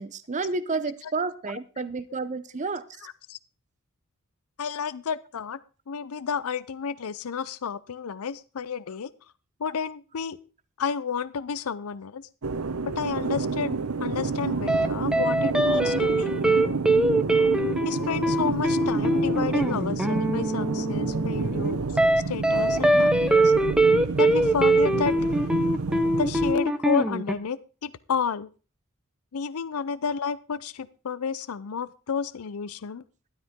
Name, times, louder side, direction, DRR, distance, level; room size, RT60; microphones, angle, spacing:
voice 1, 0.0-2.9, right 4 dB, 35° right, 13 dB, 0.7 m, -30 dB
voice 2, 3.0-3.4 4.6-5.6 5.9-9.1 9.6-10.4 10.8-12.3 12.9-16.8 17.8-22.0 22.3-23.5 24.2-25.2 26.2-28.5 29.3-33.0, left 6 dB, 90° left, 17 dB, 0.5 m, -31 dB
sound 1, 12.4-26.5, right 4 dB, 80° right, 0.8 m, -29 dB
sound 2, 14.7-14.9 15.1-27.4, right 1 dB, 5° right, 0.8 m, -23 dB
12.5 x 12.5 x 3.6 m, 0.35 s
head